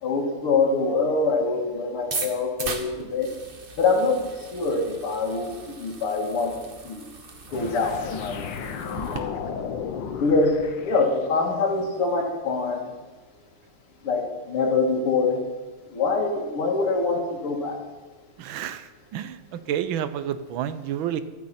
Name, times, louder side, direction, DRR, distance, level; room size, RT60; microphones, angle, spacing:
voice 1, 0.0-3.3 3.8-6.5 6.8-7.1 7.5-9.4 10.2-12.9 14.0-15.4 15.9-17.8, left 3 dB, 90° left, 1 dB, 2.9 m, -25 dB
sound 1, 2.0-9.2, right 4 dB, 35° right, 1.0 m, -38 dB
sound 2, 7.5-11.5, left 7 dB, 65° left, 1.5 m, -34 dB
voice 2, 18.4-21.2, right 10 dB, 70° right, 12 dB, 1.5 m, -30 dB
15.0 x 13.0 x 4.3 m, 1.2 s
omnidirectional pair, 2.4 m